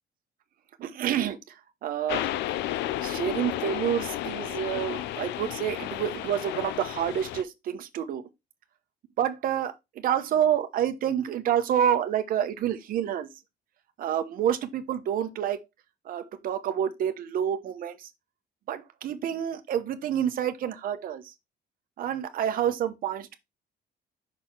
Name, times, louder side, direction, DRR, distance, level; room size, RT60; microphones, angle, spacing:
voice 1, 0.8-2.3 3.0-8.3 9.2-13.3 14.0-15.6 16.0-18.1 18.7-21.3 22.0-23.3, right 9 dB, 55° right, 0.9 m, -28 dB
sound 1, 2.1-7.4, left 13 dB, 85° left, 0.5 m, -32 dB
5.9 x 4.2 x 4.4 m
cardioid pair, 155°, 17 cm